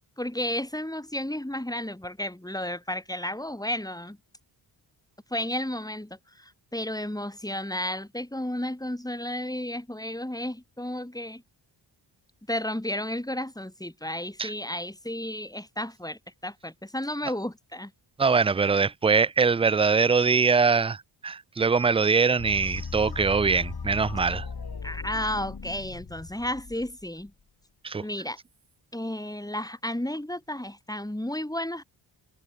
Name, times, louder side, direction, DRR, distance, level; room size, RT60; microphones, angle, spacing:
voice 1, 0.2-4.2 5.3-11.4 12.5-17.9 24.8-27.3 28.0-28.4 28.9-31.8, left 1 dB, 5° left, 5.6 m, -32 dB
voice 2, 18.2-24.5 27.8-28.0, right 5 dB, 15° right, 0.3 m, -23 dB
sound 1, 22.4-27.3, left 5 dB, 45° left, 7.9 m, -37 dB
cardioid pair, 55°, 49 cm